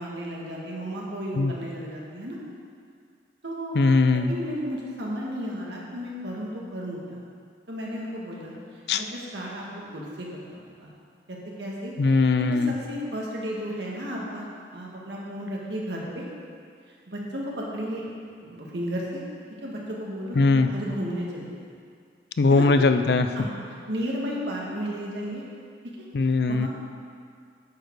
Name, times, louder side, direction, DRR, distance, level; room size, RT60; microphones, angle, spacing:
voice 1, 0.0-2.4 3.4-3.8 4.1-7.2 7.7-8.5 8.9-9.7 9.9-10.9 11.3-14.4 14.7-16.2 17.1-19.2 19.6-21.7 22.5-22.7 23.3-23.6 23.9-25.4 26.5-26.7, equal, 75° right, -4 dB, 1.8 m, -33 dB
voice 2, 3.8-4.3 8.9-9.0 12.0-12.7 20.4-20.7 22.4-23.3 26.1-26.7, left 3 dB, 60° left, 9 dB, 0.4 m, -20 dB
9.5 x 6.5 x 4.7 m, 2.3 s
head